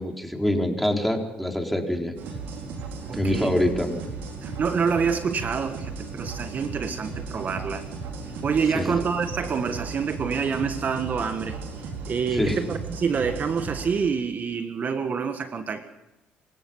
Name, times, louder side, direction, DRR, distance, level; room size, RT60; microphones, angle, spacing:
voice 1, 0.0-2.1 3.1-4.0 8.7-8.9 12.3-12.6, left 1 dB, ahead, 2 dB, 4.6 m, -25 dB
sound 1, 2.2-13.9, right 4 dB, 75° right, 4.7 m, -36 dB
voice 2, 3.1-3.5 4.4-7.8 8.4-11.6 12.1-15.8, right 6 dB, 50° right, 8 dB, 1.6 m, -27 dB
27.5 x 16.5 x 5.7 m, 0.99 s
supercardioid pair, 65°, 4 cm